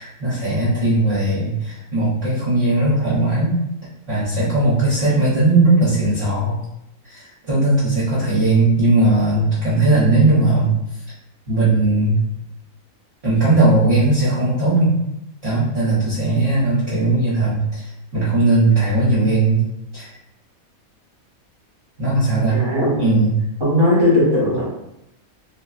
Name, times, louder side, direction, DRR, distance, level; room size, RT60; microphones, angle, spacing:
voice 1, 0.0-3.6 4.1-6.6 7.0-11.0 11.5-12.2 13.2-15.0 15.4-19.7 19.9-20.1 22.0-22.6 23.0-23.3, right 2 dB, 50° right, -10 dB, 1.0 m, -18 dB
voice 2, 16.2-16.6 22.5-23.0 23.6-24.6, left 1 dB, 20° right, -6 dB, 0.9 m, -18 dB
3.3 x 2.1 x 2.3 m, 0.84 s
omnidirectional pair, 1.5 m